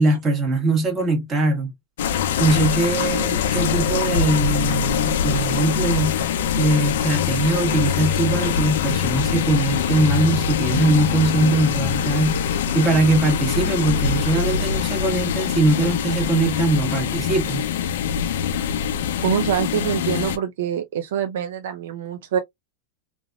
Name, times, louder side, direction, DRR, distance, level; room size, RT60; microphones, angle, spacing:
voice 1, 0.0-1.7 2.4-6.2 6.6-12.4 12.7-17.6, right 2 dB, 20° right, 1.2 m, -21 dB
sound 1, 2.0-20.4, left 7 dB, 80° left, 0.5 m, -23 dB
voice 2, 19.2-22.4, right 9 dB, 75° right, 0.6 m, -25 dB
3.3 x 2.5 x 2.3 m
supercardioid pair, 160°, 0 cm